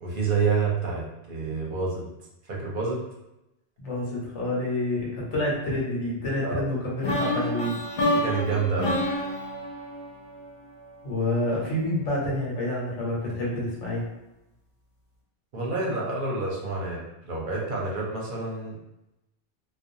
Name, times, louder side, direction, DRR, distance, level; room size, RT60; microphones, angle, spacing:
voice 1, 0.0-2.0 2.4-3.0 6.4-6.6 8.2-9.0 15.5-18.8, right 4 dB, 55° right, -3 dB, 0.7 m, -28 dB
voice 2, 3.8-7.8 11.0-14.0, left 1 dB, 90° left, -5 dB, 1.2 m, -28 dB
sound 1, 7.0-11.0, left 1 dB, 50° left, 0.6 m, -28 dB
2.4 x 2.3 x 2.6 m, 0.91 s
omnidirectional pair, 1.2 m